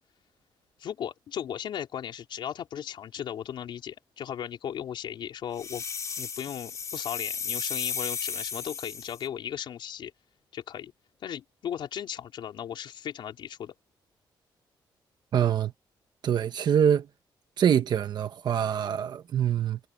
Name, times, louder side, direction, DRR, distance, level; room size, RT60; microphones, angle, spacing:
voice 1, 0.8-5.8 6.2-10.1 10.5-10.9 11.2-13.7, left 9 dB, 75° left, 4.2 m, -36 dB
sound 1, 5.6-9.2, left 6 dB, 40° left, 4.0 m, -34 dB
voice 2, 15.3-15.7 16.2-17.1 17.6-19.8, right 9 dB, 60° right, 1.1 m, -24 dB
wide cardioid pair, 160°, 8 cm